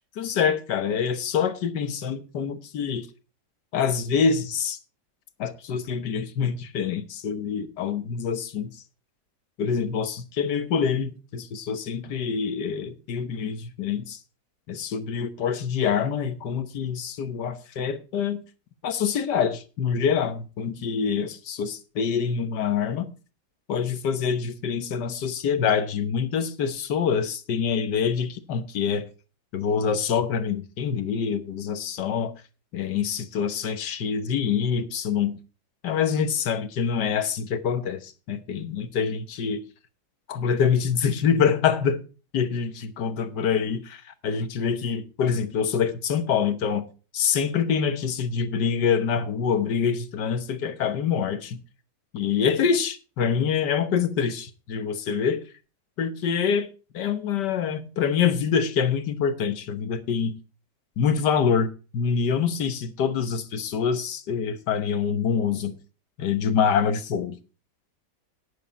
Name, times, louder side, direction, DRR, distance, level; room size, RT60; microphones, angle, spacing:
voice 1, 0.2-3.1 3.7-4.8 5.4-8.7 9.6-14.2 14.7-18.4 18.8-23.1 23.7-29.1 29.5-32.3 32.7-35.4 35.8-39.6 40.3-42.0 42.3-46.9 47.1-51.6 52.1-55.4 56.0-56.7 56.9-60.3 61.0-65.7 66.2-67.4, left 6 dB, 85° left, 1.7 m, -25 dB
11.0 x 10.0 x 4.2 m
omnidirectional pair, 1.8 m